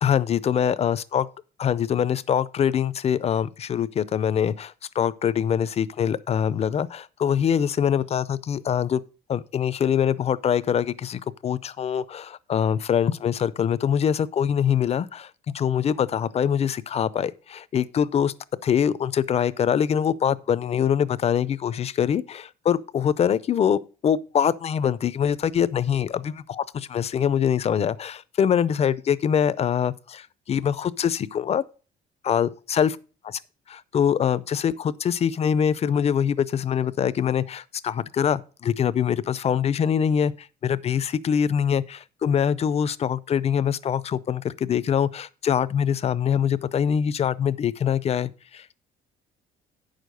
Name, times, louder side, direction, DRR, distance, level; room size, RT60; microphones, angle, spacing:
voice 1, 0.0-1.3 1.6-9.0 9.3-18.3 18.6-31.6 32.2-33.0 33.7-48.7, left 8 dB, 40° left, 0.5 m, -24 dB
8.9 x 6.5 x 5.1 m
cardioid pair, 110°, 17 cm